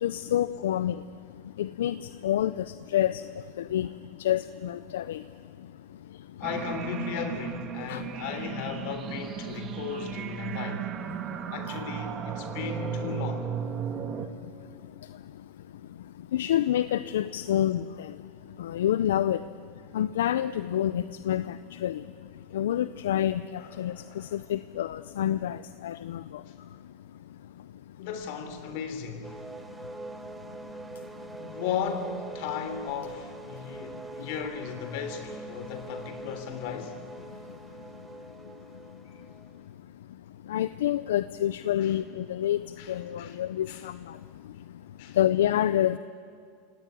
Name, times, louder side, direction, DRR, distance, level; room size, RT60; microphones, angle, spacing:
voice 1, 0.0-1.0 1.6-2.0 2.2-2.6 2.9-3.2 3.7-3.9 4.2-5.2 7.9-8.0 16.3-18.1 18.6-19.4 19.9-22.0 22.5-23.4 23.8-23.9 24.3-25.6 25.8-26.2 40.5-43.9 45.2-46.0, left 11 dB, 85° left, 15 dB, 0.5 m, -27 dB
voice 2, 6.4-10.9 11.5-13.5 23.6-24.4 28.0-29.3 31.4-37.0 41.8-41.9 42.8-43.3 43.7-43.8 45.0-45.2, left 7 dB, 65° left, 9 dB, 3.4 m, -36 dB
sound 1, 6.4-14.3, right 8 dB, 40° right, 1.9 m, -35 dB
sound 2, 29.2-39.6, right 3 dB, 10° right, 1.5 m, -44 dB
26.0 x 18.0 x 9.4 m, 2.2 s
supercardioid pair, 115°, 0 cm